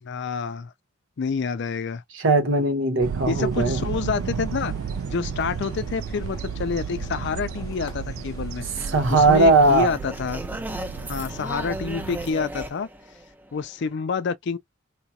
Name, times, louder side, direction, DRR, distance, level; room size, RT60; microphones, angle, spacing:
voice 1, 0.0-0.7 1.2-2.0 3.3-4.7 5.1-8.7 9.1-10.4 11.1-12.9 13.5-14.6, left 5 dB, 55° left, 0.4 m, -28 dB
voice 2, 2.1-3.8 8.9-9.9, right 2 dB, 65° right, 1.1 m, -18 dB
sound 1, 3.0-12.3, right 7 dB, 90° right, 0.3 m, -33 dB
sound 2, 3.5-9.4, left 1 dB, 20° left, 0.9 m, -44 dB
sound 3, 8.8-13.9, right 1 dB, 10° right, 0.4 m, -36 dB
3.9 x 2.3 x 2.8 m
head